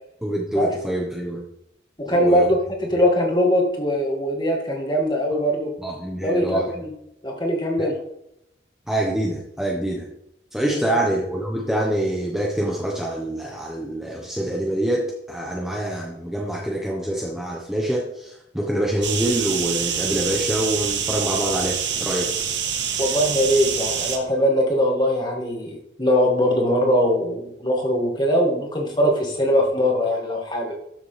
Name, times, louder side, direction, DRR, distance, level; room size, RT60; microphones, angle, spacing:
voice 1, 0.2-1.4 2.1-2.5 5.8-6.7 7.8-7.9 8.9-10.1 10.5-22.3, right 1 dB, 5° right, -3 dB, 1.3 m, -25 dB
voice 2, 2.0-2.6 2.9-5.7 6.2-6.9 7.2-7.9 10.7-11.0 23.0-30.8, equal, 25° left, 0 dB, 2.3 m, -21 dB
sound 1, 19.0-24.2, right 7 dB, 85° right, 1.4 m, -26 dB
13.0 x 7.1 x 3.5 m, 0.77 s
head